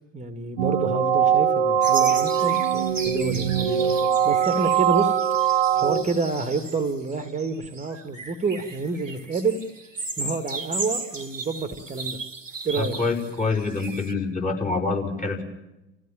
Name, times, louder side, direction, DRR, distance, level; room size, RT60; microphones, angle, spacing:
voice 1, 0.1-9.6 10.2-12.2 12.6-13.0, right 4 dB, 20° right, 10 dB, 2.0 m, -28 dB
sound 1, 0.6-6.0, right 9 dB, 70° right, 1.1 m, -21 dB
sound 2, 1.8-14.1, right 3 dB, 85° right, 1.7 m, -36 dB
voice 2, 12.8-15.4, left 3 dB, 20° left, 0 dB, 5.8 m, -26 dB
29.5 x 16.0 x 9.1 m, 0.96 s
figure-of-eight pair, 70°, 37 cm